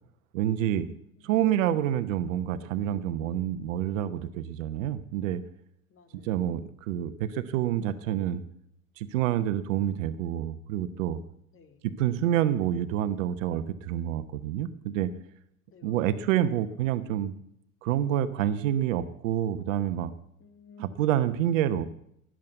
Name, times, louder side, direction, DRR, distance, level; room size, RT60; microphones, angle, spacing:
voice 1, 0.3-0.9 1.2-5.4 6.2-8.4 9.0-11.2 11.8-15.1 15.8-17.3 17.8-20.1 20.8-21.9, right 11 dB, 60° right, 13 dB, 1.1 m, -28 dB
voice 2, 5.9-6.6 11.5-11.9 15.7-16.3 20.4-21.0, left 5 dB, 30° left, 7 dB, 2.1 m, -56 dB
19.0 x 7.6 x 8.1 m, 0.73 s
figure-of-eight pair, 80°, 44 cm